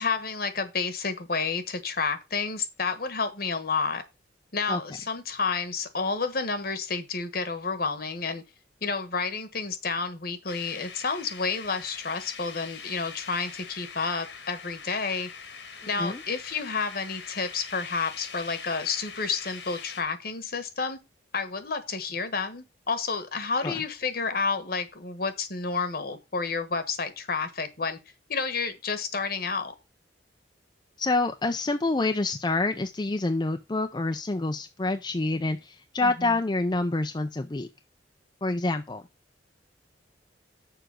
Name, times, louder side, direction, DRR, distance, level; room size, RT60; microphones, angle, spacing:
voice 1, 0.0-4.0 4.5-8.4 8.8-15.3 15.9-21.0 21.3-28.0 28.3-29.7 36.0-36.3, left 4 dB, 55° left, 1.3 m, -30 dB
sound 1, 10.5-20.0, left 6 dB, 75° left, 1.8 m, -43 dB
voice 2, 31.0-37.7 38.4-39.0, left 2 dB, 25° left, 0.5 m, -27 dB
7.0 x 5.0 x 6.2 m
head